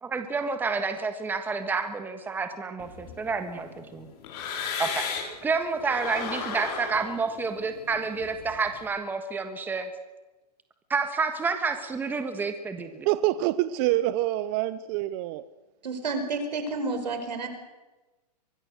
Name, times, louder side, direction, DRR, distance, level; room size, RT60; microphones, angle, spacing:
voice 1, 0.0-4.1 4.8-5.1 5.4-9.9 10.9-13.1, right 4 dB, 10° right, 1.4 m, -29 dB
sound 1, 2.8-5.4 5.8-8.8, left 6 dB, 35° left, 4.7 m, -36 dB
voice 2, 13.0-15.5, right 15 dB, 30° right, 0.6 m, -26 dB
voice 3, 15.8-17.5, right 3 dB, 85° right, 5.1 m, -30 dB
24.0 x 20.5 x 6.5 m
hypercardioid pair, 145°, 21 cm